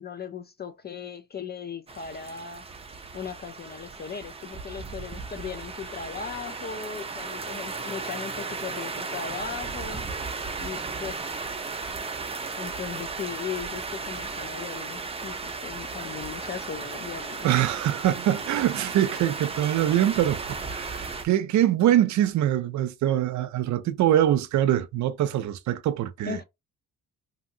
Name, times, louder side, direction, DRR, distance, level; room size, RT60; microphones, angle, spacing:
voice 1, 0.0-2.6 3.1-10.1 10.6-11.4 12.6-17.7 26.3-26.4, left 7 dB, 35° left, 0.4 m, -38 dB
sound 1, 1.9-21.3, right 4 dB, 20° right, 0.5 m, -35 dB
voice 2, 17.4-26.4, right 12 dB, 70° right, 0.5 m, -24 dB
2.8 x 2.7 x 2.7 m
cardioid pair, 90°, 30 cm